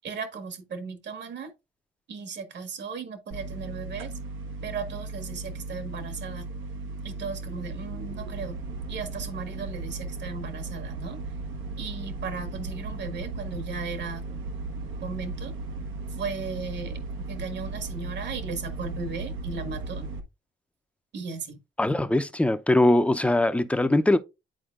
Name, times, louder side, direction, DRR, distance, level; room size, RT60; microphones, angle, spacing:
voice 1, 0.0-1.5 2.1-4.1 4.6-6.5 7.0-8.6 8.9-11.2 11.8-14.2 15.0-15.5 16.1-17.0 17.3-20.1 21.1-21.6, right 4 dB, 60° right, 1.6 m, -36 dB
sound 1, 3.3-20.2, right 3 dB, 85° right, 1.1 m, -36 dB
voice 2, 21.8-24.2, left 1 dB, 5° left, 0.6 m, -21 dB
10.5 x 4.3 x 2.4 m
cardioid pair, 90°, 20 cm